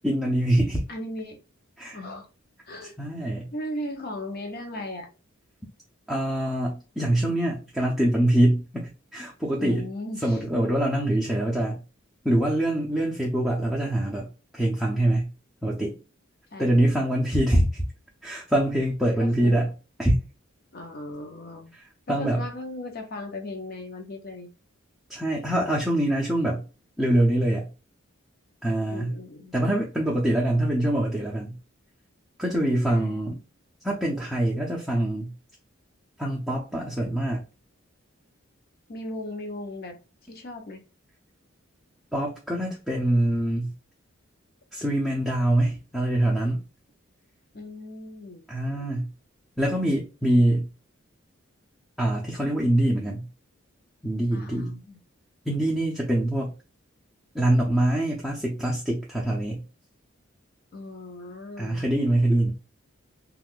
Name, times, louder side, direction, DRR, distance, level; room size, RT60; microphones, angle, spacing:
voice 1, 0.0-0.8 1.8-2.0 3.0-3.5 6.1-9.8 10.2-11.8 12.2-15.3 15.6-16.0 16.6-17.8 18.2-19.7 20.0-20.1 22.1-22.4 25.1-26.6 27.0-27.7 28.6-29.1 29.5-31.5 32.4-33.4 33.8-35.3 36.2-37.4 42.1-43.7 44.7-46.6 48.5-49.1 49.6-50.7 52.0-53.3 54.0-54.7 55.5-56.5 57.3-59.6 61.6-62.5, right 1 dB, ahead, 0.5 m, -24 dB
voice 2, 0.9-1.4 1.9-2.3 2.7-3.0 3.5-5.1 9.6-10.4 16.5-16.9 19.2-19.7 20.7-21.7 22.1-24.5 28.9-29.5 32.8-33.2 38.9-40.8 47.5-48.4 54.3-55.0 60.7-61.9, left 1 dB, 50° left, 0.7 m, -37 dB
2.6 x 2.3 x 3.5 m
head